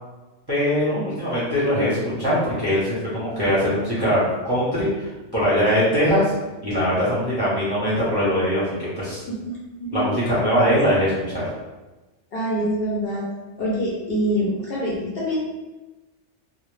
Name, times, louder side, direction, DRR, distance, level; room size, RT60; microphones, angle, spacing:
voice 1, 0.5-6.3 6.6-8.6 9.0-9.2 9.9-11.4, equal, 25° right, -10 dB, 0.6 m, -21 dB
voice 2, 9.3-10.0 10.7-10.8 12.3-13.3 13.6-15.4, equal, 60° left, -5 dB, 0.7 m, -25 dB
2.1 x 2.1 x 3.0 m, 1.1 s
omnidirectional pair, 1.2 m